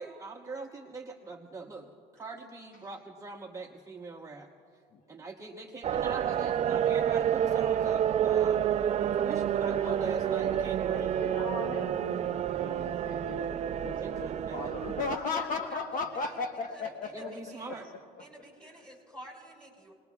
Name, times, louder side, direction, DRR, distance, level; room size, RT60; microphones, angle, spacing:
voice 1, 0.0-4.5 5.1-11.2 14.0-14.7 17.1-17.9, right 3 dB, 20° right, 0 dB, 1.0 m, -42 dB
sound 1, 5.8-15.2, right 9 dB, 40° right, 0.4 m, -29 dB
voice 2, 9.7-17.3 17.7-17.8, left 4 dB, 55° left, 4 dB, 1.1 m, -37 dB
voice 3, 15.1-17.8 18.2-19.9, equal, 5° left, -2 dB, 4.8 m, -48 dB
29.5 x 20.0 x 2.3 m, 2.2 s
cardioid pair, 110°, 17 cm